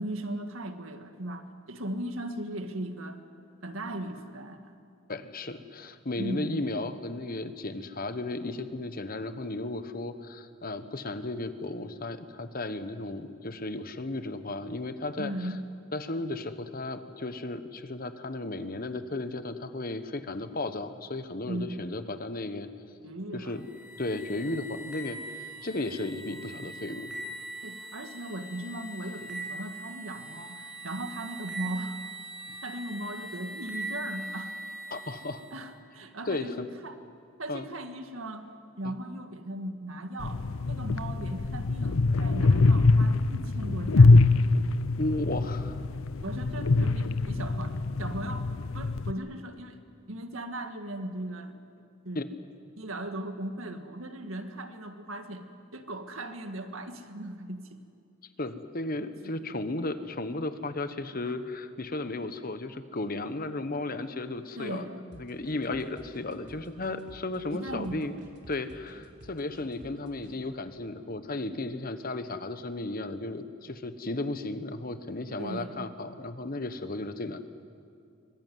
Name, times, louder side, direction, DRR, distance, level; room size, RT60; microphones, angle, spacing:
voice 1, 0.0-3.2 3.6-4.8 6.2-6.5 15.2-15.6 21.5-22.0 23.0-23.6 27.6-32.0 32.6-34.5 35.5-36.5 36.8-37.0 37.4-38.5 38.8-44.3 46.2-48.5 48.7-49.8 50.1-51.6 52.1-52.3 52.8-55.5 55.7-57.8 59.2-59.3 61.2-61.3 64.6-65.0 67.5-68.1 75.4-75.9, right 1 dB, 85° right, 7 dB, 1.9 m, -38 dB
voice 2, 5.1-15.5 15.9-22.7 23.3-23.7 24.0-25.2 25.6-27.2 34.9-35.4 36.3-36.7 37.5-37.6 38.8-38.9 45.0-45.7 52.1-52.2 58.4-68.2 68.5-77.4, left 2 dB, 45° left, 10 dB, 1.2 m, -34 dB
sound 1, 23.5-35.6, right 2 dB, 5° right, 6.9 m, -41 dB
sound 2, 40.2-49.1, left 3 dB, 85° left, 0.7 m, -23 dB
sound 3, 65.1-70.4, equal, 60° right, 3.5 m, -51 dB
24.0 x 20.5 x 9.4 m, 2.4 s
head